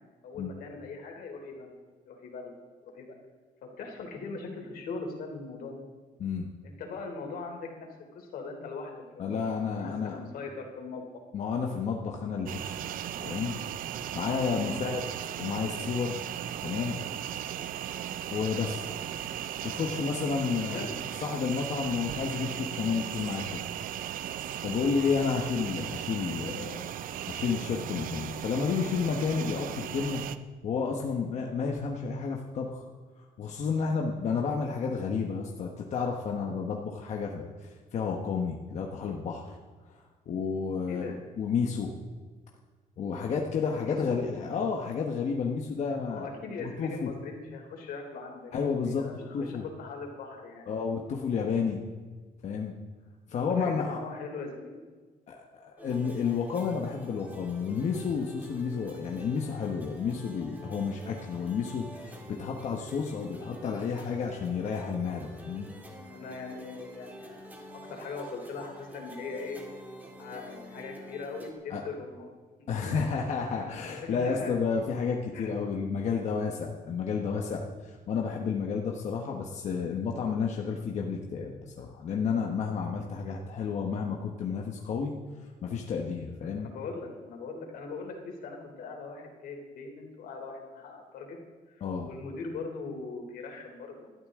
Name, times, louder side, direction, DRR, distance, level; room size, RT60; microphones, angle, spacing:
voice 1, 0.2-2.6 2.8-3.2 3.6-5.8 6.6-7.9 8.1-9.4 9.7-11.1 14.5-14.8 20.5-21.0 40.9-41.2 43.8-44.3 46.1-50.7 53.4-54.8 66.1-69.6 70.2-72.3 72.6-73.0 73.9-74.5 75.3-75.6 86.5-91.4 91.8-94.3, left 4 dB, 80° left, 2 dB, 3.3 m, -40 dB
voice 2, 9.2-10.2 11.3-12.9 13.2-13.6 14.1-15.0 15.4-16.3 16.6-17.0 18.3-18.9 19.6-20.9 21.2-23.6 24.6-26.8 27.3-30.2 30.6-32.8 33.2-37.5 37.9-39.5 40.3-41.9 43.0-46.3 46.6-47.1 48.5-49.6 50.7-51.8 52.4-52.7 53.3-54.0 55.3-65.7 71.7-71.8 72.7-85.1 85.6-86.7 91.8-92.1, left 5 dB, 50° left, 0 dB, 1.3 m, -31 dB
sound 1, 12.5-30.4, right 11 dB, 65° right, 0.6 m, -37 dB
sound 2, 55.8-71.5, equal, 10° right, 1.9 m, -47 dB
20.0 x 12.5 x 3.7 m, 1.4 s
cardioid pair, 180°, 15 cm